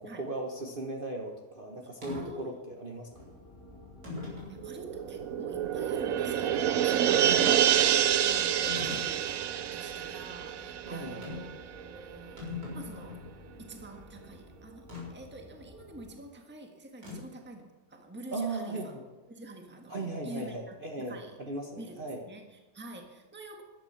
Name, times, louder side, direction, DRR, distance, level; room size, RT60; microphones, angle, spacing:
voice 1, 0.0-3.1 7.2-7.5 10.9-11.3 18.3-19.0 19.9-22.3, right 2 dB, 35° right, 0 dB, 1.3 m, -37 dB
voice 2, 2.0-2.6 4.5-7.7 8.2-11.5 11.8-13.2 13.6-18.9 19.3-21.4 21.8-23.6, right 2 dB, 5° right, 3 dB, 1.4 m, -47 dB
sound 1, 2.0-2.3 3.2-3.3 4.0-4.6 5.2-5.3 8.7-9.1 11.2-11.6 11.9-12.0 12.2-13.3 14.9-15.1 17.0-17.4, left 3 dB, 80° right, 5.2 m, -40 dB
sound 2, 3.1-16.2, left 1 dB, 10° left, 3.0 m, -53 dB
sound 3, 4.6-11.6 11.9-12.0, right 10 dB, 65° right, 0.9 m, -27 dB
14.5 x 11.5 x 5.8 m, 1.2 s
omnidirectional pair, 1.8 m